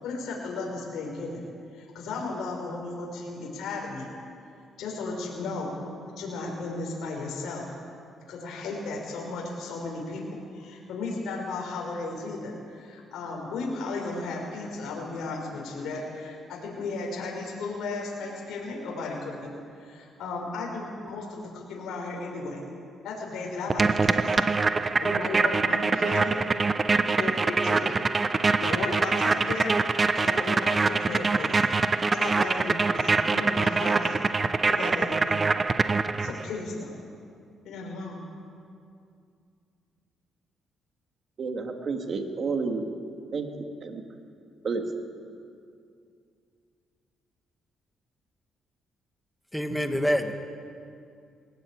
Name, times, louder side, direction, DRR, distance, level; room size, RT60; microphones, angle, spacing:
voice 1, 0.0-1.3 1.7-4.1 4.8-5.7 6.2-7.6 8.3-10.2 10.5-19.5 19.8-22.6 23.0-24.5 24.8-26.2 27.2-28.0 28.6-34.2 34.7-35.4 36.2-36.9 37.6-38.2, left 3 dB, 80° left, -2 dB, 5.1 m, -35 dB
sound 1, 23.7-36.5, right 4 dB, 30° right, 0.9 m, -24 dB
voice 2, 41.4-42.9 43.3-43.5 43.8-44.0 44.6-44.8, right 4 dB, 50° right, 4 dB, 2.6 m, -30 dB
voice 3, 49.5-50.3, equal, ahead, 5 dB, 1.9 m, -26 dB
21.0 x 18.5 x 8.9 m, 2.4 s
cardioid pair, 90°, 0 cm